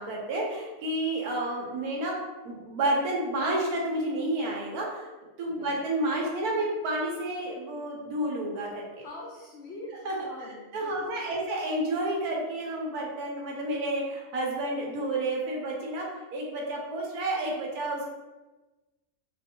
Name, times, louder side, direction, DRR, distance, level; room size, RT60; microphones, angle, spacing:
voice 1, 0.0-2.2 2.4-5.1 5.4-9.1 10.0-18.1, right 1 dB, 75° right, -2 dB, 1.3 m, -30 dB
voice 2, 5.5-5.8 9.0-11.4, left 2 dB, 65° left, -4 dB, 0.6 m, -44 dB
3.8 x 2.5 x 2.7 m, 1.2 s
omnidirectional pair, 1.6 m